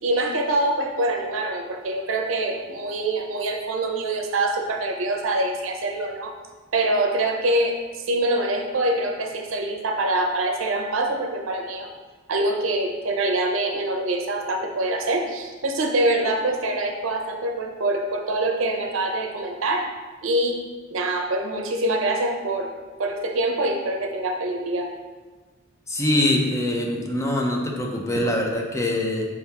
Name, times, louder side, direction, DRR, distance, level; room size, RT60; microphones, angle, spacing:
voice 1, 0.0-6.3 6.7-7.8 8.1-11.9 12.3-19.9 20.2-20.6 20.9-22.7 23.0-24.9, right 2 dB, 85° right, 3 dB, 0.6 m, -24 dB
voice 2, 25.9-29.3, left 1 dB, 15° left, 1 dB, 0.5 m, -23 dB
4.6 x 3.4 x 2.8 m, 1.3 s
head